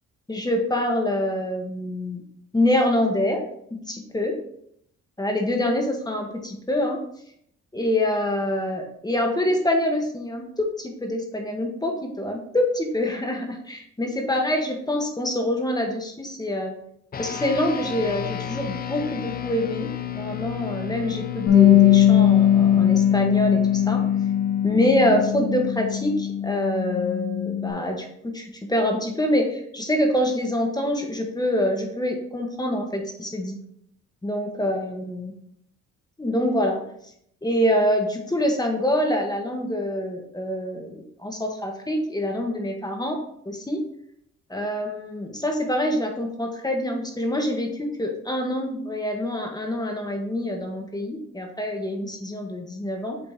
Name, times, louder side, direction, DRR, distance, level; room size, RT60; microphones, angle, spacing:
voice 1, 0.3-2.2 2.5-3.4 3.9-4.3 5.2-7.0 7.7-16.7 17.2-19.9 20.1-24.0 24.6-33.6 34.2-35.3 36.2-36.8 37.4-43.2 43.4-43.8 44.5-53.2, left 1 dB, 15° left, 2 dB, 1.2 m, -25 dB
sound 1, 17.1-26.8, left 11 dB, 30° left, 0.5 m, -34 dB
Bass guitar, 21.5-27.7, left 11 dB, 70° left, 2.0 m, -19 dB
6.9 x 3.9 x 3.6 m, 0.70 s
cardioid pair, 90°, 30 cm